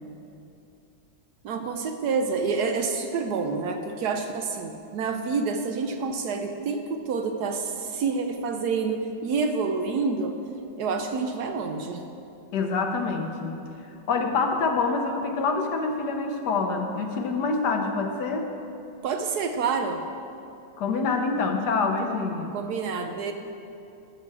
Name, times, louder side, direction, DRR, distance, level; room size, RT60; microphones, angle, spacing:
voice 1, 1.4-10.4 10.8-12.0 19.0-20.0 22.5-23.3, right 4 dB, 70° right, 6 dB, 1.1 m, -28 dB
voice 2, 12.5-13.6 14.1-18.5 20.8-22.5, left 4 dB, 70° left, 4 dB, 1.3 m, -26 dB
13.0 x 6.0 x 4.8 m, 2.7 s
omnidirectional pair, 2.0 m